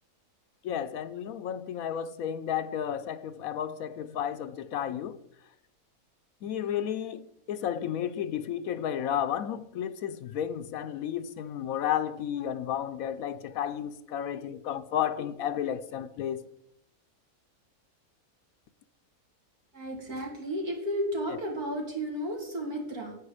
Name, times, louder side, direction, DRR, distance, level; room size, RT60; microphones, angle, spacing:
voice 1, 0.6-5.2 6.4-16.4, left 9 dB, 70° left, 1.0 m, -32 dB
voice 2, 19.7-23.2, equal, 75° right, 3.4 m, -33 dB
9.4 x 9.0 x 4.9 m
omnidirectional pair, 1.6 m